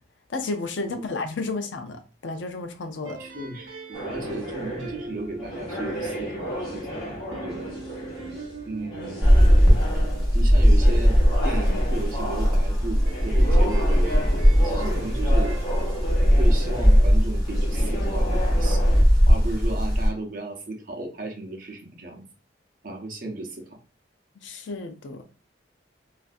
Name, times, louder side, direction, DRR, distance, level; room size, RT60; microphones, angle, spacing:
voice 1, 0.3-3.2 24.4-25.2, left 3 dB, 75° left, 0.5 m, -32 dB
sound 1, 3.0-11.9 12.9-17.4, right 3 dB, 85° right, 0.6 m, -43 dB
voice 2, 3.2-7.7 8.7-9.5 10.3-11.1 11.4-14.3 14.6-15.6 16.4-18.8 19.3-22.2 22.8-23.8, right 2 dB, 45° right, 0.7 m, -35 dB
sound 2, 3.9-19.0, equal, 25° left, 1.3 m, -34 dB
sound 3, 9.2-20.1, equal, ahead, 1.6 m, -19 dB
3.2 x 2.5 x 2.5 m
head